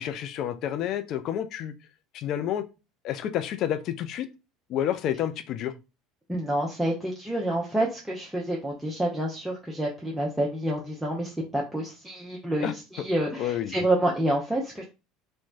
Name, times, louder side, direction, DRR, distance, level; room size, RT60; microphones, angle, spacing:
voice 1, 0.0-1.7 2.1-2.6 3.0-4.3 4.7-5.7 12.6-12.7 13.4-13.8, left 10 dB, 50° left, 10 dB, 0.3 m, -29 dB
voice 2, 6.3-14.8, right 1 dB, 5° right, -3 dB, 0.6 m, -28 dB
3.0 x 2.1 x 2.4 m, 0.28 s
figure-of-eight pair, 65°, 0 cm